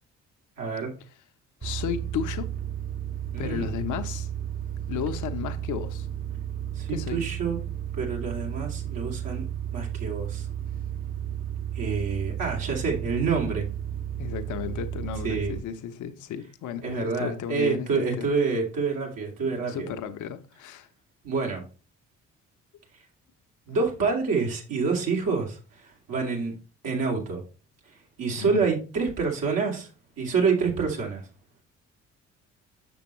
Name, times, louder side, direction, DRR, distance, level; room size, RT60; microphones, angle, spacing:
voice 1, 0.6-0.9 3.3-3.7 6.8-7.6 8.0-10.5 11.7-13.6 15.2-15.5 16.8-19.9 21.2-21.6 23.7-26.5 26.8-27.4 28.2-29.9 30.2-31.2, right 4 dB, 60° right, 2.6 m, -27 dB
voice 2, 1.6-2.5 3.4-4.3 4.9-6.1 6.9-7.2 14.2-17.9 18.2-18.3 19.6-20.9 28.4-28.6, left 8 dB, 55° left, 0.9 m, -33 dB
sound 1, 1.6-15.6, right 10 dB, 25° right, 1.0 m, -33 dB
7.0 x 6.8 x 3.1 m
hypercardioid pair, 45°, 37 cm